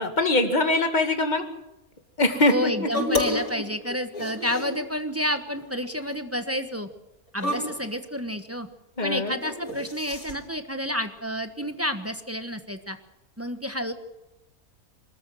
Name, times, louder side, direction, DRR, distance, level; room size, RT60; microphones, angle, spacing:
voice 1, 0.0-1.4 2.2-2.9 4.1-4.2 9.0-9.4, left 2 dB, 30° left, 6 dB, 2.1 m, -23 dB
voice 2, 2.5-6.9 7.3-8.7 9.0-13.0 13.4-13.9, equal, 10° right, 7 dB, 1.2 m, -30 dB
sound 1, 2.9-3.5 3.8-4.9 5.4-5.7 6.0-6.1 7.4-7.9 9.4-10.3, left 2 dB, 70° left, 6.5 m, -29 dB
24.5 x 14.0 x 7.9 m, 0.96 s
omnidirectional pair, 1.5 m